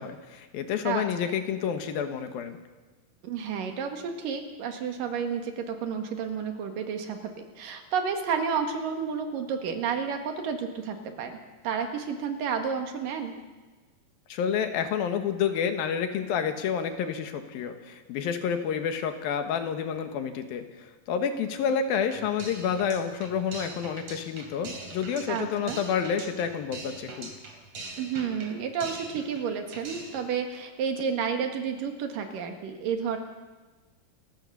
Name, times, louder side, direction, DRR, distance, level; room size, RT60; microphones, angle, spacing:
voice 1, 0.0-2.6 14.3-27.3, left 7 dB, 85° left, 8 dB, 3.3 m, -29 dB
voice 2, 0.8-1.3 3.2-13.4 25.3-25.8 28.0-33.2, right 6 dB, 70° right, 5 dB, 3.3 m, -31 dB
sound 1, 22.1-29.5 29.7-30.3, right 2 dB, 45° right, 3.7 m, -42 dB
28.0 x 15.0 x 6.9 m, 1.3 s
omnidirectional pair, 4.1 m